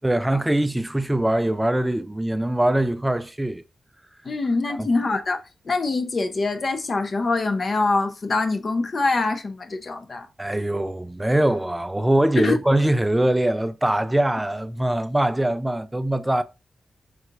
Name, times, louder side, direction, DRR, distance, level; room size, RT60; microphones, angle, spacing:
voice 1, 0.0-3.6 4.7-4.9 10.4-16.4, right 1 dB, 10° right, 0.3 m, -22 dB
voice 2, 4.2-5.4 5.7-10.3 12.4-12.6, left 3 dB, 40° left, 0.6 m, -24 dB
4.6 x 3.8 x 2.4 m
wide cardioid pair, 160°, 0 cm